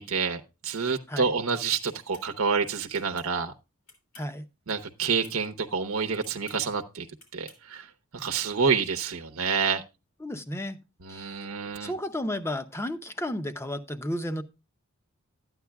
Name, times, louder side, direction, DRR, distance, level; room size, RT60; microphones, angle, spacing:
voice 1, 0.0-3.5 4.7-7.1 7.3-9.8 11.0-11.9, right 5 dB, 85° right, 0.9 m, -28 dB
sound 1, 1.9-2.3 2.9-3.3 3.9-4.4 5.0-5.4 6.2-6.6 7.2-7.6, left 3 dB, 85° left, 3.2 m, -53 dB
voice 2, 10.2-10.8 11.1-11.5 11.8-14.4, left 1 dB, 10° left, 0.7 m, -33 dB
12.5 x 9.4 x 2.3 m
head